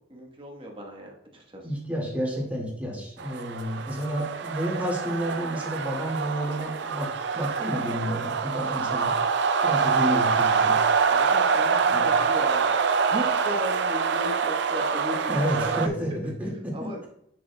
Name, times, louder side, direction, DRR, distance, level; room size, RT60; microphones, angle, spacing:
voice 1, 0.1-1.6 11.1-16.3 16.7-17.0, equal, 25° right, 0 dB, 1.3 m, -36 dB
voice 2, 1.6-10.8 11.9-12.1 15.3-17.1, equal, 10° right, -4 dB, 2.1 m, -30 dB
sound 1, 3.2-15.9, right 5 dB, 60° right, 0.5 m, -25 dB
9.3 x 6.3 x 2.3 m, 0.75 s
head